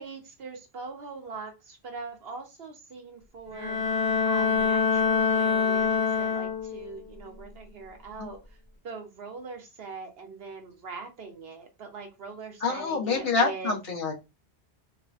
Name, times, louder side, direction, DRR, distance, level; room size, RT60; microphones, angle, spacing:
voice 1, 0.0-4.0 4.2-8.6 8.8-13.8, right 4 dB, 65° right, 1.0 m, -42 dB
Bowed string instrument, 3.5-6.9, left 6 dB, 20° left, 1.0 m, -25 dB
voice 2, 12.6-14.2, left 4 dB, 60° left, 1.1 m, -27 dB
3.2 x 2.1 x 2.4 m
omnidirectional pair, 1.1 m